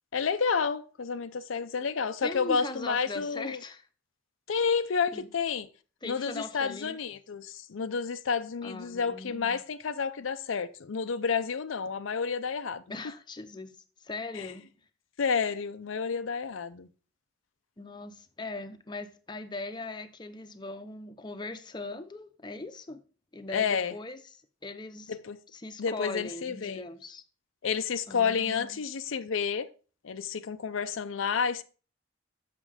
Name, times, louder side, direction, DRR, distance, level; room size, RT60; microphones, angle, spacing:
voice 1, 0.1-3.6 4.5-5.7 6.0-12.8 14.3-14.5 15.2-16.9 23.5-23.9 25.1-25.4 25.8-26.8 27.6-29.7 30.0-31.6, left 6 dB, 85° left, 0.5 m, -30 dB
voice 2, 2.2-3.9 4.5-4.7 5.1-5.3 6.0-7.0 8.6-9.6 12.9-13.7 14.0-14.6 17.8-23.0 23.3-24.2 24.6-25.2 25.5-27.2 28.1-28.8, left 2 dB, 25° left, 0.7 m, -40 dB
7.5 x 6.0 x 4.9 m
head